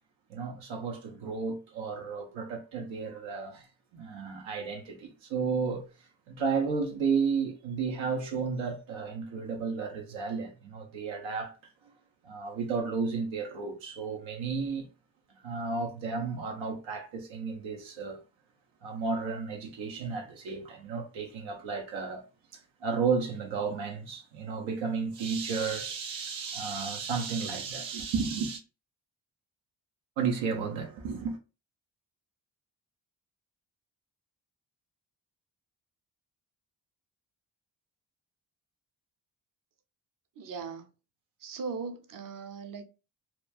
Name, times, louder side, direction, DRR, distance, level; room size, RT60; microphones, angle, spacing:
voice 1, 0.3-3.7 3.9-5.9 6.3-11.7 12.2-14.9 15.4-18.2 18.8-22.2 22.8-28.6 30.2-31.4, right 5 dB, 90° right, 0.8 m, -33 dB
voice 2, 40.4-40.9 41.4-42.9, right 5 dB, 45° right, 0.6 m, -38 dB
3.0 x 2.3 x 2.4 m
cardioid pair, 55°, 45 cm